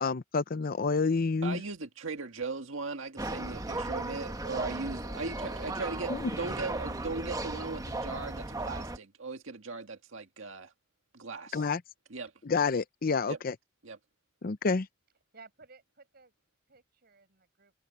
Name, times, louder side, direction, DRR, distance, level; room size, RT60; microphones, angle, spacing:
voice 1, 0.0-1.6 11.5-11.8 12.5-13.5 14.4-14.9, left 4 dB, 45° left, 0.6 m, -28 dB
voice 2, 1.4-10.7 11.1-11.7 12.1-12.3 13.3-13.4 13.8-14.0, right 3 dB, 90° right, 1.8 m, -38 dB
sound 1, 3.2-9.0, right 2 dB, 20° right, 1.2 m, -36 dB
voice 3, 15.3-16.3 16.7-17.7, right 4 dB, 50° right, 7.1 m, -56 dB
head